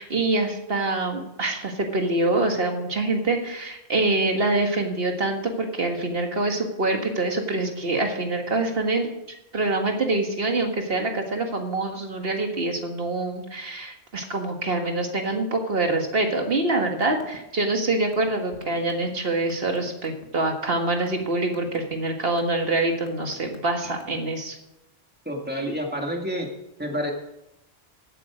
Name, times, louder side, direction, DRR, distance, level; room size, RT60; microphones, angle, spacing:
voice 1, 0.0-9.1 9.5-24.6, right 2 dB, 65° right, 3 dB, 1.9 m, -25 dB
sound 1, 16.9-17.4 17.6-20.2 20.8-21.2 21.5-21.9 22.4-22.7 23.1-24.3, left 4 dB, 60° left, 1.8 m, -44 dB
voice 2, 25.3-26.5 26.8-27.1, equal, 10° right, 1 dB, 2.2 m, -28 dB
15.5 x 8.6 x 5.0 m, 0.90 s
omnidirectional pair, 1.1 m